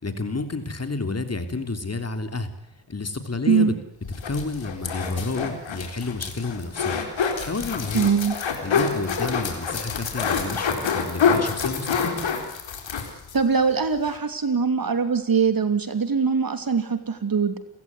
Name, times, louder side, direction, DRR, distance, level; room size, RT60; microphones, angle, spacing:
voice 1, 0.0-2.5 2.9-3.7 4.3-8.1 8.6-12.2, left 3 dB, 35° left, 8 dB, 3.2 m, -30 dB
sound 1, 4.0-13.4 13.7-13.8 14.0-14.2, left 6 dB, 75° left, 4.3 m, -27 dB
voice 2, 7.9-8.3 13.3-17.6, right 5 dB, 50° right, 9 dB, 2.9 m, -22 dB
29.5 x 15.5 x 9.6 m, 0.84 s
cardioid pair, 70°, 45 cm